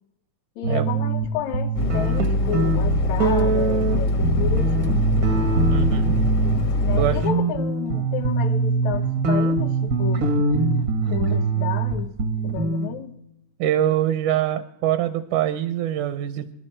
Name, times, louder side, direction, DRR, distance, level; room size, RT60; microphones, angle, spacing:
voice 1, 0.6-5.1 6.8-10.3 11.1-12.1 12.4-13.2, left 9 dB, 75° left, 1.9 m, -31 dB
sound 1, 0.6-1.3 1.5-6.6 6.9-12.9, right 4 dB, 65° right, 0.9 m, -23 dB
sound 2, 1.7-7.2, left 2 dB, 55° left, 1.2 m, -23 dB
voice 2, 5.7-6.2 7.0-7.2 13.6-16.5, right 11 dB, 80° right, 2.2 m, -23 dB
24.5 x 11.5 x 4.4 m
omnidirectional pair, 3.5 m